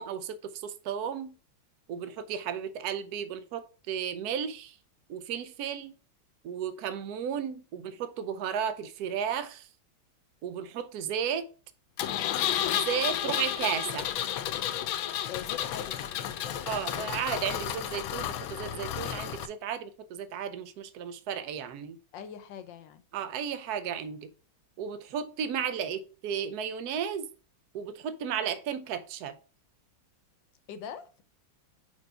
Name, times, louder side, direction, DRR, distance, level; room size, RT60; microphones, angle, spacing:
voice 1, 0.0-1.3 1.9-4.8 5.1-5.9 6.4-9.7 10.4-11.5 12.7-14.1 16.7-22.0 23.1-24.3 24.8-27.3 27.7-29.4, right 8 dB, 65° right, 1.0 m, -34 dB
Engine, 12.0-19.5, left 11 dB, 90° left, 1.4 m, -32 dB
voice 2, 15.3-16.8 22.1-23.0 30.7-31.2, left 8 dB, 70° left, 1.3 m, -43 dB
5.0 x 4.6 x 5.5 m
omnidirectional pair, 2.2 m